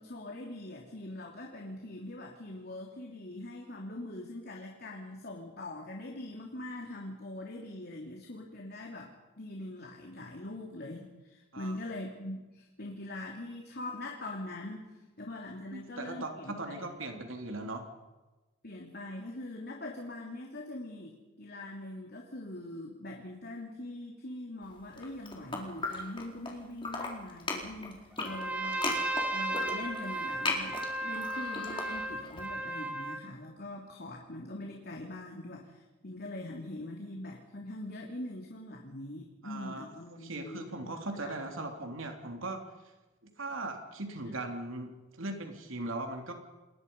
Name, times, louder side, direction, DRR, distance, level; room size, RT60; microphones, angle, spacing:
voice 1, 0.0-14.8 15.2-16.8 18.6-40.9 41.2-41.3, left 1 dB, 50° left, 0 dB, 3.2 m, -42 dB
voice 2, 15.7-17.9 39.4-39.8 40.2-42.6 43.2-46.3, right 2 dB, 70° right, 4 dB, 3.3 m, -39 dB
sound 1, 24.9-26.5 26.8-32.4, left 3 dB, 25° left, 4.1 m, -37 dB
Trumpet, 28.2-33.3, right 1 dB, 5° right, 3.0 m, -35 dB
29.0 x 21.5 x 5.5 m, 1.1 s
head